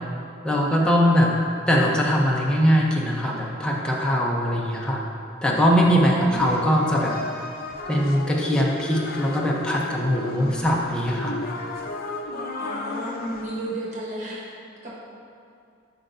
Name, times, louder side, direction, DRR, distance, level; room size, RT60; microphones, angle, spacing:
voice 1, 0.4-1.3 1.7-5.0 5.4-7.1 7.9-11.4, equal, 5° left, -3 dB, 0.7 m, -21 dB
voice 2, 6.1-6.4 12.6-14.5 14.8-15.0, right 1 dB, 40° right, -6 dB, 1.1 m, -33 dB
sound 1, 6.4-13.4, left 2 dB, 50° left, 0.5 m, -33 dB
10.5 x 4.5 x 2.6 m, 2.5 s
head